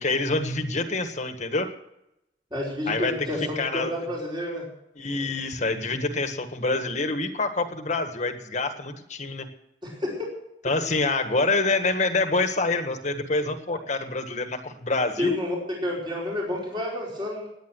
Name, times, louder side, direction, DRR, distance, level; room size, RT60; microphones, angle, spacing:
voice 1, 0.0-1.7 2.9-3.9 5.0-9.5 10.6-15.4, left 3 dB, 40° left, 7 dB, 1.6 m, -26 dB
voice 2, 2.5-4.6 9.8-10.3 15.2-15.5 15.8-17.5, left 1 dB, 25° right, -3 dB, 4.8 m, -30 dB
18.0 x 10.5 x 6.4 m, 0.85 s
head